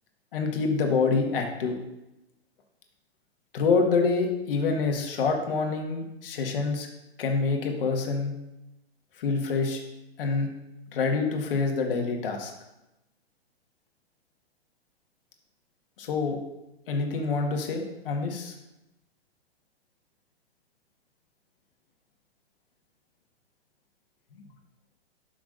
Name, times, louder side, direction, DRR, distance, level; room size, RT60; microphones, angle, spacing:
voice 1, 0.3-1.8 3.5-6.9 7.2-8.4 9.2-9.8 10.2-10.5 10.9-12.5 16.0-16.4 16.9-18.5 24.3-24.4, left 4 dB, 55° left, 3 dB, 1.7 m, -26 dB
11.5 x 6.0 x 2.6 m, 0.92 s
hypercardioid pair, 125°, 33 cm